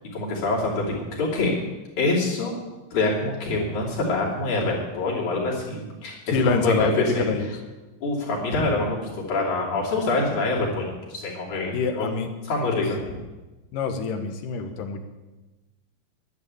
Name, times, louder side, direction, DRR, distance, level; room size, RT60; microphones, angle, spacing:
voice 1, 0.1-0.8 1.1-1.5 2.0-2.5 2.9-7.2 8.0-12.1 12.4-13.1, left 2 dB, 65° left, -4 dB, 4.4 m, -25 dB
voice 2, 6.3-7.6 11.7-12.3 13.7-15.0, left 4 dB, 85° left, 6 dB, 2.8 m, -25 dB
11.0 x 10.0 x 8.5 m, 1.1 s
omnidirectional pair, 3.7 m